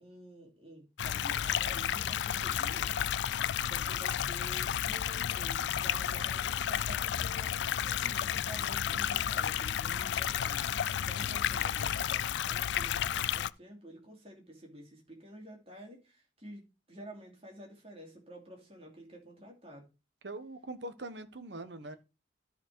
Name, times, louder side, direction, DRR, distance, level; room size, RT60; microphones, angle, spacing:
voice 1, 0.0-2.9 3.7-10.7 11.0-19.9 21.6-21.7, equal, 30° right, 2.7 m, -50 dB
sound 1, 1.0-13.5, left 9 dB, 70° left, 0.3 m, -32 dB
sound 2, 2.5-12.2, left 1 dB, 20° left, 2.4 m, -59 dB
voice 2, 20.2-22.0, right 2 dB, 70° right, 1.1 m, -43 dB
13.0 x 4.3 x 4.6 m
head